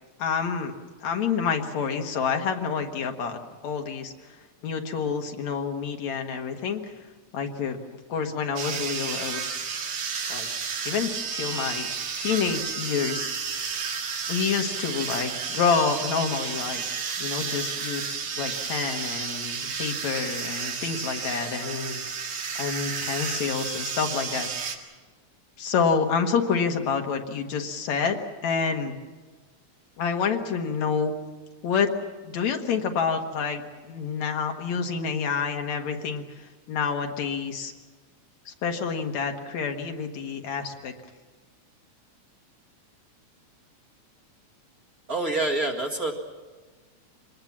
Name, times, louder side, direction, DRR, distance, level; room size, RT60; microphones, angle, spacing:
voice 1, 0.2-0.7 1.0-4.1 4.6-6.9 7.3-7.8 8.1-9.6 10.3-10.5 10.8-13.3 14.3-16.8 17.2-22.0 22.6-24.5 25.6-29.0 30.0-31.1 31.6-31.9 32.2-37.7 38.5-40.9, left 6 dB, 70° left, 4 dB, 2.8 m, -28 dB
sound 1, 8.6-24.8, right 6 dB, 70° right, 3.3 m, -32 dB
voice 2, 45.1-46.1, right 2 dB, 35° right, 0 dB, 2.2 m, -26 dB
25.5 x 20.5 x 7.4 m, 1.3 s
omnidirectional pair, 3.3 m